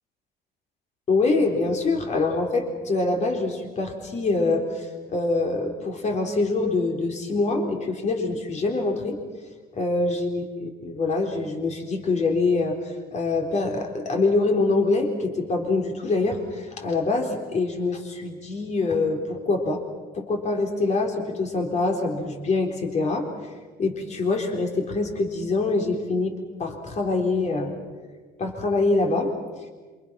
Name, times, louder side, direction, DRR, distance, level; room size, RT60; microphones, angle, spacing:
voice 1, 1.1-9.2 9.8-19.8 20.1-23.3 23.8-26.3 26.6-27.7 28.4-29.3, left 3 dB, 45° left, 2 dB, 3.9 m, -25 dB
27.5 x 25.0 x 6.1 m, 1.4 s
cardioid pair, 110°, 17 cm